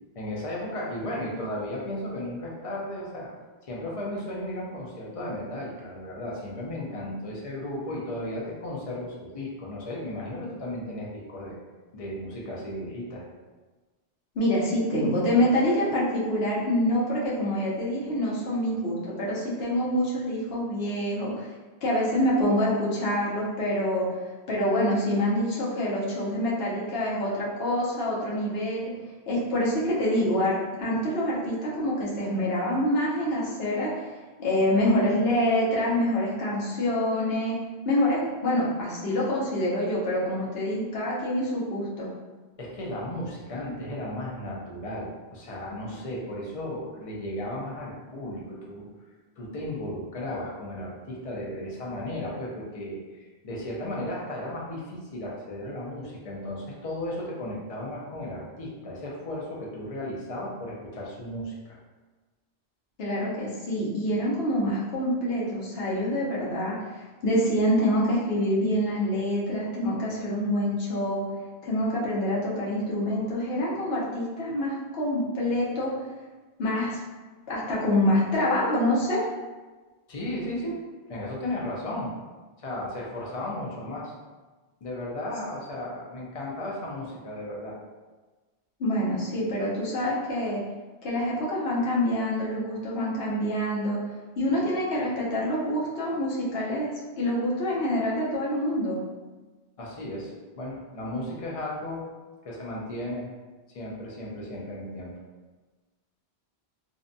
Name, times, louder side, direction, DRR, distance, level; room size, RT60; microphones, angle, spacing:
voice 1, 0.1-3.3 3.7-11.6 11.9-13.2 42.6-48.9 49.4-61.8 80.1-80.8 81.1-82.1 82.6-84.1 84.8-87.8 99.8-102.0 102.4-103.2 103.7-105.1, left 1 dB, 45° left, -4 dB, 0.5 m, -35 dB
voice 2, 14.3-21.5 21.8-24.2 24.5-28.9 29.3-34.1 34.4-37.6 37.8-42.1 63.0-71.3 71.6-75.9 76.6-77.0 77.5-79.3 88.8-90.6 91.0-94.0 94.4-99.0, left 1 dB, 70° left, -6 dB, 0.9 m, -26 dB
2.6 x 2.1 x 2.5 m, 1.3 s
omnidirectional pair, 1.1 m